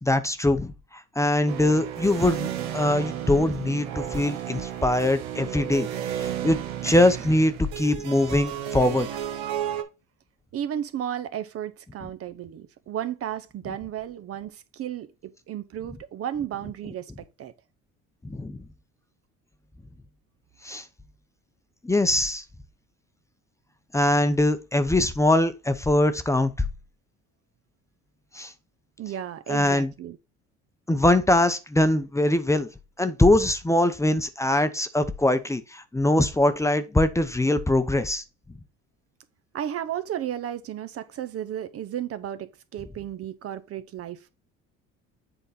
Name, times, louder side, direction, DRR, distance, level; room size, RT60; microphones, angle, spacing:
voice 1, 0.0-5.9 6.1-6.6 6.8-9.1 18.2-18.6 20.6-20.8 21.8-22.4 23.9-26.7 28.3-28.5 29.5-29.9 30.9-32.7 33.0-38.2, left 1 dB, 10° left, 0.7 m, -22 dB
sound 1, 1.5-9.8, right 10 dB, 90° right, 1.0 m, -33 dB
voice 2, 10.5-17.1 17.4-17.5 29.0-30.2 39.5-44.3, right 10 dB, 50° right, 0.8 m, -33 dB
8.0 x 3.8 x 4.1 m
supercardioid pair, 90°, 30 cm